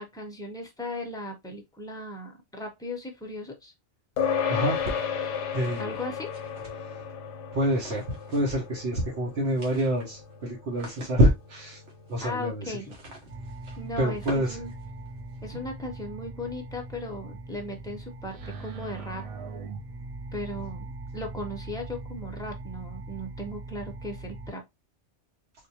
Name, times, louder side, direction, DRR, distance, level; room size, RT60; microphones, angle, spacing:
voice 1, 0.0-3.7 5.8-6.3 12.2-12.9 13.8-14.7 15.4-19.2 20.3-24.6, left 1 dB, 5° left, 0.6 m, -37 dB
sound 1, 4.2-13.8, left 7 dB, 90° left, 1.0 m, -34 dB
voice 2, 4.5-4.8 5.5-5.9 6.8-7.0 7.5-8.1 8.3-11.8 12.1-12.8 14.0-14.6, equal, 65° right, 1.1 m, -26 dB
sound 2, 4.6-7.1 7.7-8.7 8.9-9.0 9.3-15.5, right 2 dB, 85° right, 1.4 m, -46 dB
sound 3, 13.3-24.5, right 3 dB, 45° right, 0.4 m, -40 dB
3.5 x 2.5 x 2.8 m
omnidirectional pair, 1.2 m